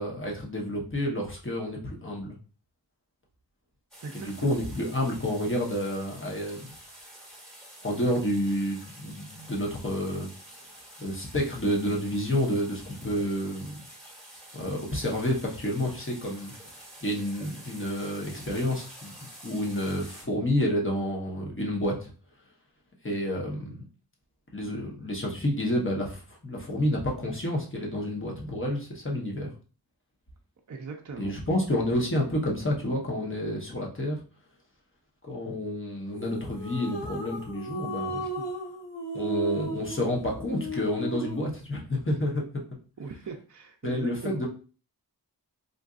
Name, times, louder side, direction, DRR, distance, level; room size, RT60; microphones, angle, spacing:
voice 1, 0.0-2.4 4.1-6.7 7.8-10.3 11.0-13.8 14.5-16.5 17.0-19.1 19.4-22.1 23.0-23.8 24.5-29.5 31.2-34.2 35.2-38.3 39.1-42.6 43.8-44.5, equal, 30° left, -2 dB, 0.9 m, -29 dB
sound 1, 3.9-20.2, right 1 dB, ahead, 1.4 m, -48 dB
voice 2, 4.0-4.7 30.7-31.4 38.4-38.5 43.0-44.4, right 4 dB, 45° right, 3 dB, 0.5 m, -39 dB
sound 2, 36.2-41.5, right 1 dB, 80° left, 1.0 m, -36 dB
3.8 x 2.5 x 2.4 m, 0.38 s
wide cardioid pair, 50°, 42 cm